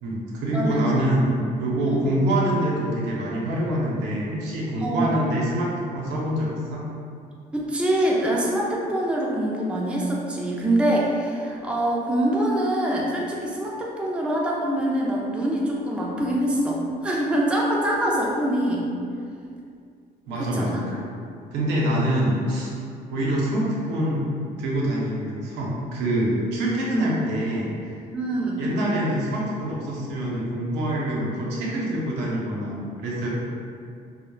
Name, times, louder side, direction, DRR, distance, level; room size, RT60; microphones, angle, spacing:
voice 1, 0.0-6.8 20.3-21.0 21.5-22.7 23.1-24.3 24.6-27.9 28.6-33.3, right 1 dB, 90° right, -4 dB, 0.6 m, -25 dB
voice 2, 0.5-0.9 1.9-2.0 4.8-5.2 7.5-18.9 20.3-20.9 28.1-28.6, right 1 dB, 5° right, -3 dB, 0.3 m, -24 dB
2.1 x 2.0 x 3.0 m, 2.4 s
cardioid pair, 110°, 17 cm